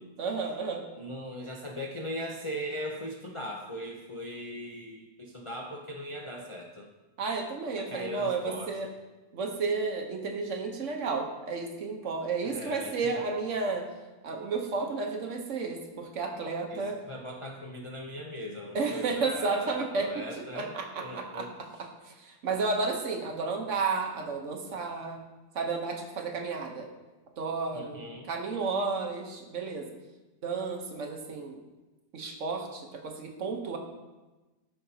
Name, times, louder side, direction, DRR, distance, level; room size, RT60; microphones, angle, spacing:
voice 1, 0.2-0.9 7.2-8.9 9.3-13.8 14.2-17.0 18.7-21.5 22.0-25.2 25.5-26.9 27.4-29.9 30.4-31.6 32.1-33.8, right 4 dB, 60° right, 3 dB, 1.2 m, -32 dB
voice 2, 0.9-6.9 7.8-8.9 12.4-13.4 16.7-21.5 27.7-28.3, equal, 50° left, 0 dB, 0.3 m, -39 dB
13.0 x 5.7 x 2.8 m, 1.1 s
omnidirectional pair, 1.6 m